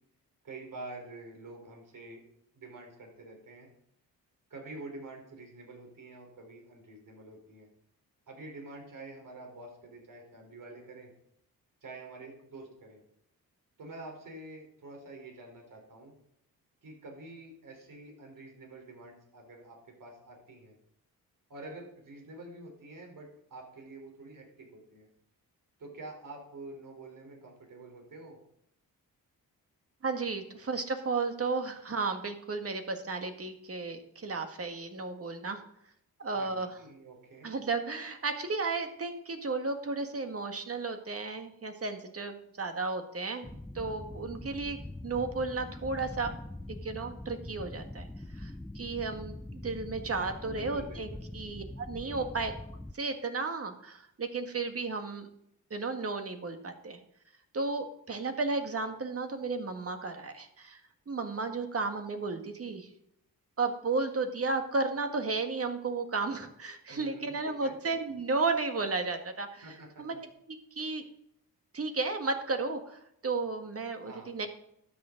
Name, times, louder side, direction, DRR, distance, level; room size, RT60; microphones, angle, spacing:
voice 1, 0.4-2.2 2.5-3.7 4.5-7.7 8.3-11.1 11.8-13.0 13.8-16.1 16.8-20.8 21.5-25.1 25.8-28.4 36.3-37.5 50.4-51.2 52.0-52.3 66.9-67.3 67.6-67.7 69.6-70.0 74.0-74.3, right 2 dB, 60° right, 1 dB, 3.9 m, -47 dB
voice 2, 30.0-35.6 36.2-36.8 37.4-43.5 43.7-44.8 45.0-46.3 46.8-48.1 48.3-52.5 52.9-55.3 55.7-57.0 57.5-60.8 61.1-62.9 63.6-69.7 70.0-70.1 70.5-71.0 71.7-74.5, right 3 dB, 40° right, 6 dB, 1.7 m, -33 dB
sound 1, 43.4-52.9, left 1 dB, 5° left, 0.3 m, -43 dB
12.5 x 9.1 x 3.9 m, 0.75 s
cardioid pair, 80°, 37 cm